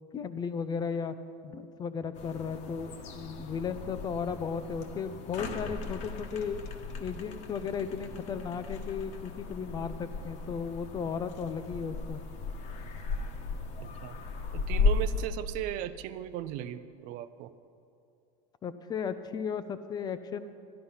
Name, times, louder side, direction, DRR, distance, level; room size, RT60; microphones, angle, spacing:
voice 1, 0.1-1.1 1.4-6.6 7.0-12.2 18.6-20.5, left 6 dB, 25° left, 12 dB, 0.6 m, -35 dB
sound 1, 2.2-15.3, left 3 dB, 45° left, 1.3 m, -35 dB
voice 2, 14.5-17.5, right 12 dB, 55° right, 13 dB, 0.6 m, -37 dB
12.0 x 11.5 x 5.6 m, 2.6 s
supercardioid pair, 125°, 16 cm